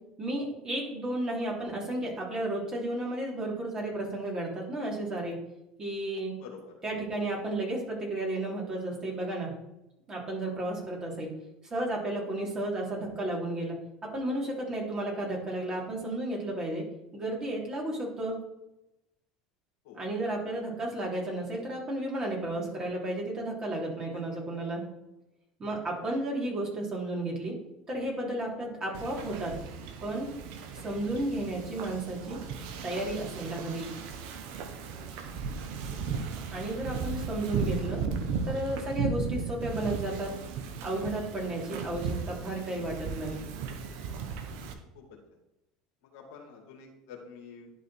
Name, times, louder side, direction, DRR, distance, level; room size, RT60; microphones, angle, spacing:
voice 1, 0.2-5.4 5.8-6.3 6.8-9.5 10.1-11.3 11.6-13.8 14.1-16.8 17.1-18.4 19.9-24.8 25.6-27.6 27.9-29.5 30.0-30.3 30.7-32.4 32.8-33.9 36.5-38.0 38.4-40.3 40.8-43.3, right 1 dB, 30° right, -3 dB, 3.3 m, -33 dB
Wind / Ocean, 28.9-44.7, right 5 dB, 65° right, 1.1 m, -36 dB
voice 2, 46.0-47.7, left 6 dB, 70° left, 0 dB, 2.1 m, -49 dB
11.0 x 4.1 x 4.4 m, 0.88 s
hypercardioid pair, 75°, 3 cm